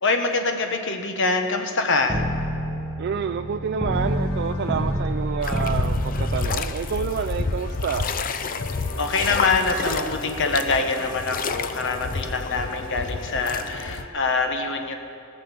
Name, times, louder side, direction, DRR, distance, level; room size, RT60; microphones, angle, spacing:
voice 1, 0.0-2.2 9.0-15.0, left 3 dB, 60° left, 5 dB, 1.2 m, -24 dB
sound 1, 2.1-7.6, equal, 10° left, 1.4 m, -28 dB
voice 2, 3.0-8.1, right 6 dB, 50° right, 7 dB, 0.3 m, -28 dB
sound 2, 3.9-14.1, left 2 dB, 75° left, 1.4 m, -43 dB
sound 3, 5.4-14.0, left 4 dB, 40° left, 0.5 m, -29 dB
19.0 x 6.9 x 6.9 m, 2.8 s
head